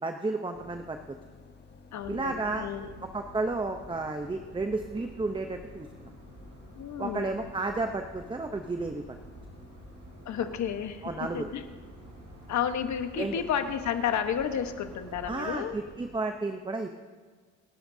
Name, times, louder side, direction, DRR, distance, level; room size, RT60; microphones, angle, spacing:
voice 1, 0.0-1.0 2.1-2.7 3.1-6.1 7.0-9.0 11.0-11.5 13.2-13.3 15.3-16.9, right 3 dB, 15° right, 5 dB, 0.8 m, -32 dB
sound 1, 0.5-15.6, left 5 dB, 35° left, 1.5 m, -54 dB
voice 2, 1.9-2.9 6.7-7.4 10.2-11.7 12.5-15.8, left 8 dB, 70° left, 8 dB, 1.3 m, -32 dB
sound 2, 1.9-16.1, right 2 dB, 75° right, 4.4 m, -50 dB
28.5 x 11.0 x 2.8 m, 1.5 s
cardioid pair, 90°, 30 cm